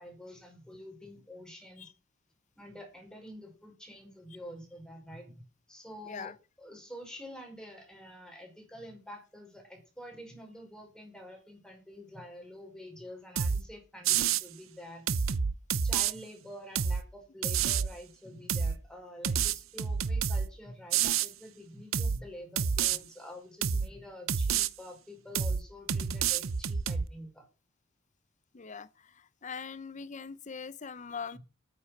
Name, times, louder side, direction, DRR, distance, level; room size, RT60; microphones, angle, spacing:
voice 1, 0.0-1.9 2.6-5.3 5.7-6.3 6.6-15.4 15.8-27.5, left 1 dB, 5° left, 5.5 m, -47 dB
sound 1, 13.4-13.6 14.0-14.4 15.1-16.1 16.8-17.0 17.4-17.9 18.5-18.8 19.2-20.5 20.9-21.3 21.9-22.2 22.6-23.0 23.6-23.9 24.3-24.7 25.3-25.6 25.9-27.1, right 7 dB, 85° right, 0.7 m, -28 dB
voice 2, 28.5-31.4, left 5 dB, 35° left, 0.7 m, -42 dB
9.9 x 9.4 x 7.9 m
head